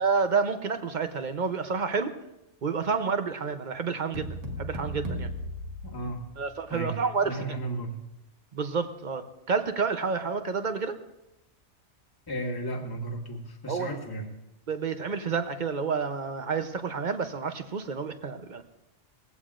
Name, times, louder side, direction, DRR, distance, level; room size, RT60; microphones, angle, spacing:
voice 1, 0.0-2.1 2.6-5.3 6.4-7.4 8.5-11.0 13.7-13.9 14.7-18.6, right 5 dB, 45° right, 9 dB, 0.8 m, -29 dB
sound 1, 4.1-6.6, equal, 85° right, 1.7 m, -36 dB
voice 2, 5.8-6.2 6.7-7.0 7.2-8.0 12.3-14.3, right 1 dB, 20° left, 0 dB, 1.4 m, -34 dB
19.5 x 15.5 x 2.5 m, 0.93 s
omnidirectional pair, 1.2 m